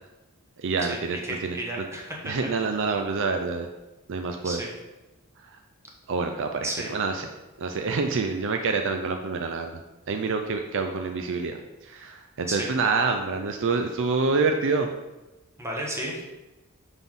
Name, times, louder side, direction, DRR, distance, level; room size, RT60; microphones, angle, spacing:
voice 1, 0.6-1.9 2.2-3.7 4.1-4.6 5.4-5.6 6.1-7.3 7.6-9.8 10.1-14.9, right 4 dB, 60° right, 5 dB, 0.5 m, -27 dB
voice 2, 1.2-2.3 4.4-4.7 6.6-6.9 12.5-12.7 15.6-16.2, right 1 dB, 15° right, -2 dB, 1.2 m, -32 dB
6.0 x 5.5 x 3.7 m, 1.1 s
head